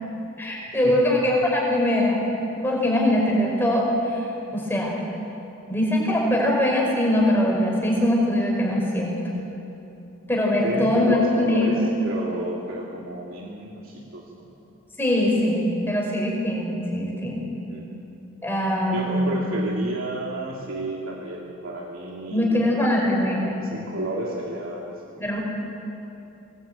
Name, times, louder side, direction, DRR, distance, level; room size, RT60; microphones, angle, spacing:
voice 1, 0.4-2.2 2.6-5.0 5.7-9.2 10.3-11.9 15.0-17.5 18.4-19.4 22.3-23.5 25.2-25.4, left 1 dB, 10° left, -2 dB, 5.1 m, -22 dB
voice 2, 10.6-14.5 17.7-18.0 18.9-22.7 23.0-23.1 23.5-24.8, right 1 dB, 75° right, -3 dB, 2.7 m, -32 dB
23.5 x 19.5 x 9.0 m, 2.9 s
head